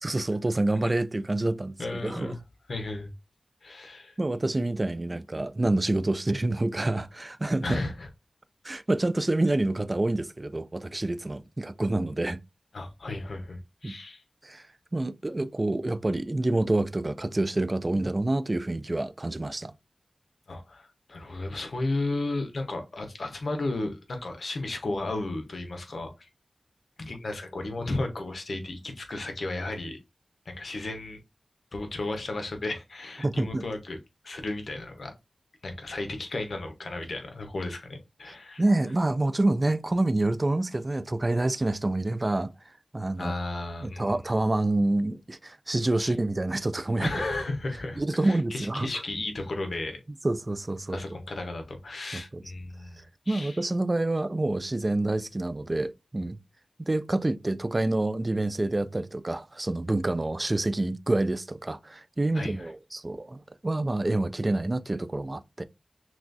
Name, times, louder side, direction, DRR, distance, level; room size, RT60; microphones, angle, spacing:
voice 1, 0.0-2.4 4.2-7.8 8.6-12.4 13.8-14.0 14.4-14.7 14.9-19.7 33.2-33.6 38.6-42.5 42.9-43.3 43.8-47.1 48.0-48.9 50.2-51.0 52.1-52.4 53.0-56.4 56.8-65.6, right 2 dB, 35° right, 0.3 m, -27 dB
voice 2, 1.8-2.4 2.7-3.1 3.6-4.2 7.6-8.1 12.7-14.2 20.5-26.3 27.0-30.0 30.5-31.2 31.7-34.0 34.2-35.1 35.6-38.6 43.2-44.1 46.0-46.1 47.0-50.0 50.9-53.6 62.3-62.7, left 2 dB, 80° left, 0.8 m, -34 dB
6.0 x 2.3 x 2.6 m
wide cardioid pair, 75°, 0 cm